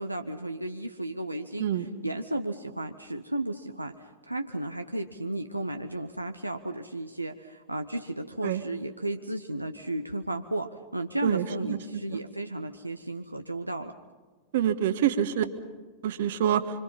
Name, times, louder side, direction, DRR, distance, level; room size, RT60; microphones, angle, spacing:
voice 1, 0.0-13.9, right 1 dB, 85° right, 5 dB, 0.8 m, -34 dB
voice 2, 11.2-11.8 14.5-15.4 16.0-16.6, right 10 dB, 55° right, 10 dB, 1.4 m, -26 dB
26.0 x 25.5 x 5.6 m, 1.4 s
figure-of-eight pair, 90°, 0 cm